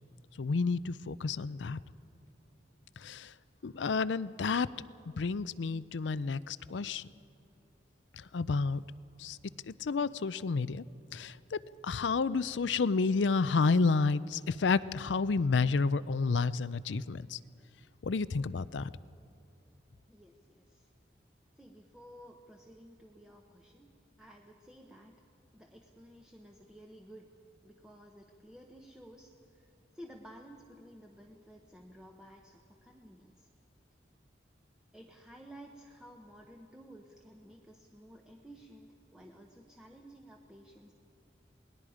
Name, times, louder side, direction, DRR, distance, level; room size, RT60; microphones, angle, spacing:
voice 1, 0.4-1.8 3.0-3.3 3.6-4.7 5.2-7.1 8.1-8.8 9.2-9.4 9.7-10.8 11.1-17.4 18.0-18.9, left 4 dB, 85° left, 17 dB, 0.5 m, -30 dB
voice 2, 20.1-20.9 21.6-25.2 25.5-27.3 27.6-33.5 34.9-40.9, equal, 5° right, 1 dB, 0.9 m, -54 dB
28.5 x 20.0 x 5.0 m, 2.8 s
head